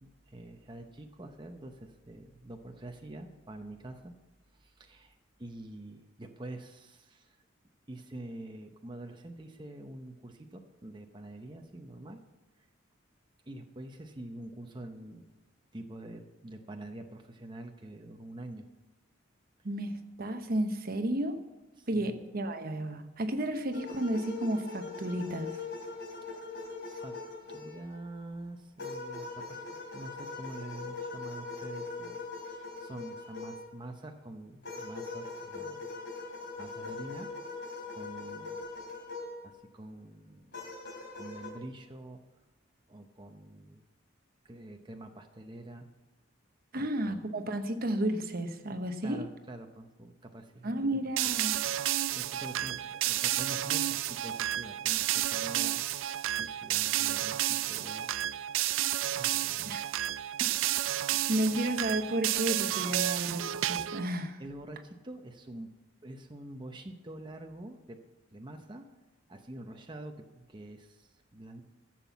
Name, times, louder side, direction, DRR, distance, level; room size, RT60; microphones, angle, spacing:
voice 1, 0.0-4.2 4.5-7.4 7.9-12.2 12.6-12.7 13.5-15.3 15.7-18.7 21.8-22.2 26.9-27.2 27.5-29.6 29.9-35.9 36.6-38.6 39.4-40.6 41.1-42.2 42.9-43.9 44.4-45.9 46.7-47.2 49.0-51.4 52.1-58.8 59.0-59.8 61.1-61.6 64.4-65.7 66.0-68.0 68.3-68.9 69.3-71.6, right 1 dB, 25° right, 0.8 m, -46 dB
voice 2, 19.6-21.4 21.9-25.6 46.7-49.2 50.6-51.6 59.7-59.8 61.3-64.4, right 1 dB, 50° right, 0.9 m, -32 dB
sound 1, 23.7-28.0 28.8-33.7 34.6-39.4 40.5-41.5, left 3 dB, 60° left, 3.2 m, -41 dB
sound 2, 51.2-64.1, right 13 dB, 75° right, 0.4 m, -31 dB
14.5 x 7.6 x 7.2 m
head